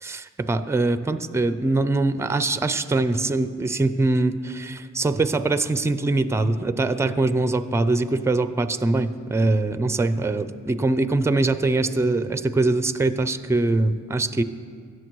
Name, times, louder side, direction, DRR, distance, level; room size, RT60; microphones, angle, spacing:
voice 1, 0.0-14.4, right 2 dB, 10° right, 12 dB, 0.4 m, -23 dB
17.0 x 6.6 x 3.1 m, 2.1 s
cardioid pair, 50°, 31 cm